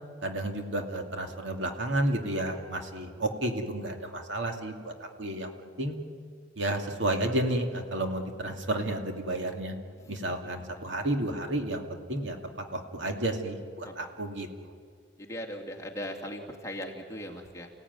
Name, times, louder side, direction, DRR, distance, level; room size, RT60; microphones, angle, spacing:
voice 1, 0.2-5.5 5.8-6.0 6.6-9.7 10.1-12.4 12.7-14.7, right 1 dB, 65° right, 4 dB, 2.5 m, -31 dB
voice 2, 15.2-17.7, equal, 15° left, 0 dB, 2.7 m, -39 dB
29.5 x 17.0 x 9.5 m, 2.2 s
head